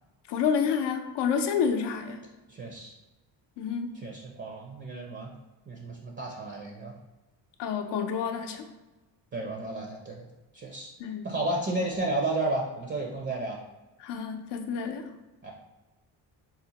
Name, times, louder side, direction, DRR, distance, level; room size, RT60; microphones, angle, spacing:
voice 1, 0.3-2.2 3.6-3.9 7.6-8.6 11.0-11.3 14.0-15.0, left 6 dB, 70° left, 6 dB, 0.6 m, -29 dB
voice 2, 2.5-2.9 3.9-5.3 5.7-6.9 9.3-10.3 10.5-10.9 11.2-13.6 15.4-15.5, right 2 dB, 25° right, 0 dB, 0.5 m, -32 dB
4.1 x 2.1 x 2.8 m, 1.1 s
cardioid pair, 90°, 43 cm